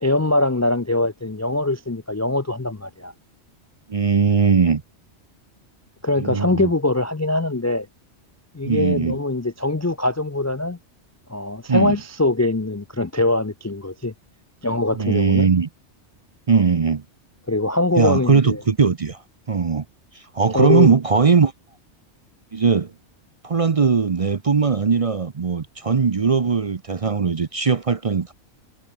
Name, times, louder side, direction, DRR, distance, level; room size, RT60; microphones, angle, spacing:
voice 1, 0.0-3.1 6.0-7.9 8.5-10.8 11.3-14.1 14.6-15.5 17.5-18.6 20.5-20.9, left 2 dB, 25° left, 0.4 m, -22 dB
voice 2, 3.9-4.8 6.2-6.7 8.6-9.2 11.7-11.9 14.9-15.7 16.5-17.0 18.0-19.9 20.1-21.5 22.5-22.9 23.4-28.3, right 5 dB, 35° right, 0.6 m, -19 dB
omnidirectional pair, 1.2 m